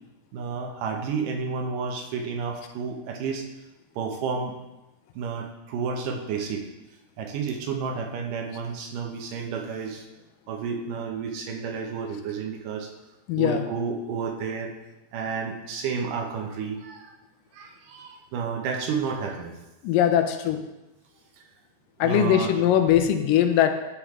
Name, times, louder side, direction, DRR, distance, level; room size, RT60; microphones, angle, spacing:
voice 1, 0.3-3.4 4.0-4.5 5.2-6.6 7.2-10.0 10.5-12.9 13.4-14.7 15.1-17.1 17.5-19.6 22.0-22.5, right 5 dB, 80° right, 2 dB, 2.5 m, -31 dB
voice 2, 13.3-13.6 19.8-20.6 22.0-23.7, left 10 dB, 90° left, 7 dB, 2.3 m, -21 dB
10.0 x 5.1 x 3.7 m, 1.0 s
omnidirectional pair, 3.8 m